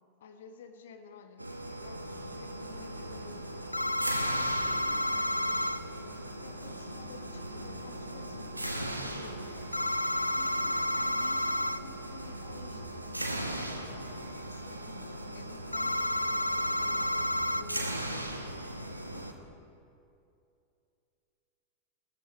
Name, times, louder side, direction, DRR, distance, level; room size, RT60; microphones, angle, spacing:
voice 1, 0.2-8.8 9.0-9.7 10.3-19.5, left 6 dB, 60° left, 7 dB, 1.3 m, -53 dB
sound 1, 1.4-19.3, right 1 dB, 85° right, 1.1 m, -39 dB
sound 2, 3.7-5.8 9.7-11.8 15.7-17.6, left 1 dB, 85° left, 0.3 m, -30 dB
18.5 x 13.5 x 4.5 m, 2.5 s
figure-of-eight pair, 90°, 0 cm